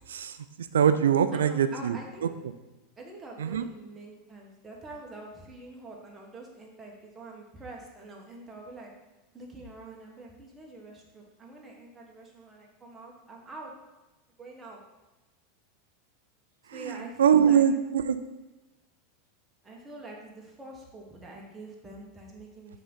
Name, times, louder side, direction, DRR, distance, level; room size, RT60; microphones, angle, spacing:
voice 1, 0.7-2.3 3.4-3.7 16.7-18.2, right 8 dB, 90° right, 12 dB, 0.4 m, -23 dB
voice 2, 1.3-2.3 3.0-8.9 9.3-13.7 14.4-14.8 16.7-17.6 19.6-22.8, right 2 dB, 20° right, -1 dB, 1.6 m, -45 dB
5.5 x 3.8 x 5.6 m, 1.1 s
hypercardioid pair, 105°, 0 cm